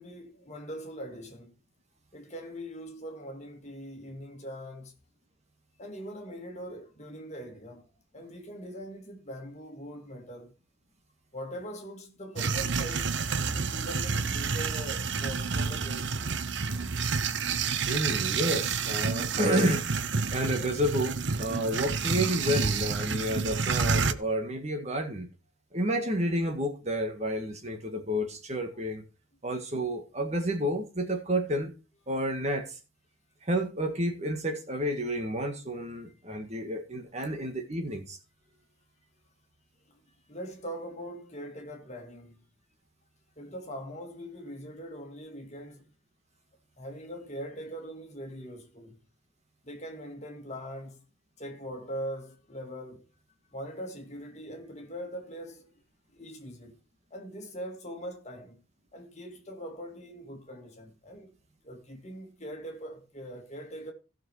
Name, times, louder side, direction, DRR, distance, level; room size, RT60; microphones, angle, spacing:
voice 1, 0.0-1.6 2.1-4.9 5.8-7.9 8.1-10.5 11.3-13.3 13.5-16.4 36.4-36.5 40.3-42.4 43.4-45.9 46.8-49.0 49.6-51.0 51.4-53.0 53.5-55.7 56.1-56.7 57.1-58.6 58.9-61.3 61.6-63.9, equal, 35° left, 2.3 m, -42 dB
sound 1, 12.4-24.1, right 5 dB, 55° right, 0.8 m, -29 dB
sound 2, 12.5-18.2, right 2 dB, 15° right, 2.5 m, -41 dB
voice 2, 17.9-19.9 20.3-25.3 25.7-29.0 29.4-31.7 32.1-32.8 33.4-38.2, equal, 30° right, 1.8 m, -30 dB
15.5 x 6.1 x 4.6 m
head